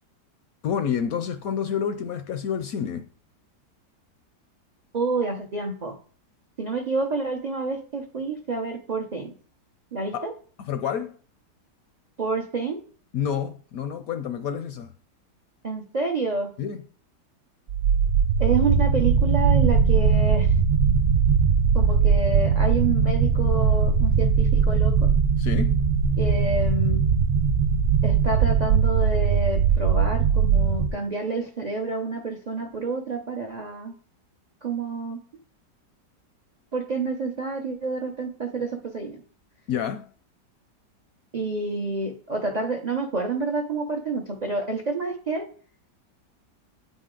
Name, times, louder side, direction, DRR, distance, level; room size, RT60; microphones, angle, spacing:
voice 1, 0.6-3.0 10.1-10.3 10.6-11.1 13.1-14.9 16.6-16.8 25.4-25.8 39.7-40.1, left 8 dB, 70° left, 0.8 m, -28 dB
voice 2, 4.9-6.0 6.6-9.3 9.9-10.3 12.2-12.8 15.6-16.5 18.4-20.5 21.7-24.9 26.2-27.0 28.0-33.9 34.6-35.2 36.7-39.2 41.3-45.4, right 3 dB, 80° right, 0.3 m, -28 dB
sound 1, 17.7-30.9, right 6 dB, 60° right, 1.0 m, -20 dB
8.8 x 4.1 x 3.7 m
omnidirectional pair, 1.9 m